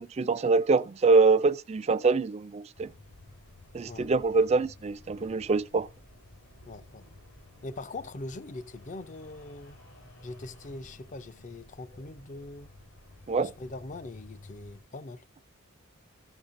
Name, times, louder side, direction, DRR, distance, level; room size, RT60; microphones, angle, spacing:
voice 1, 0.0-2.9 3.7-5.9 13.3-13.5, right 4 dB, 30° right, 0.3 m, -24 dB
sound 1, 2.7-14.8, left 2 dB, 75° left, 4.0 m, -53 dB
voice 2, 6.7-7.1 7.6-9.8 10.2-12.7 13.4-15.2, left 2 dB, 35° left, 0.5 m, -42 dB
14.0 x 7.1 x 2.6 m
head